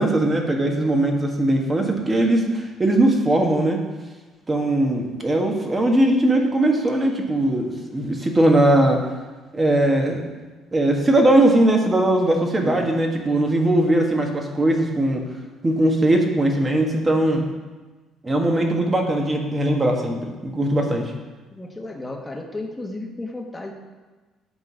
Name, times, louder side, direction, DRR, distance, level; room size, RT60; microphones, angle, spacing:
voice 1, 0.0-3.8 4.5-9.0 9.5-10.2 10.7-15.2 15.6-17.4 18.2-21.1, right 1 dB, 25° right, 2 dB, 1.5 m, -20 dB
voice 2, 21.5-23.7, left 2 dB, 15° left, 2 dB, 1.4 m, -33 dB
8.6 x 4.0 x 6.3 m, 1.3 s
supercardioid pair, 75°, 0 cm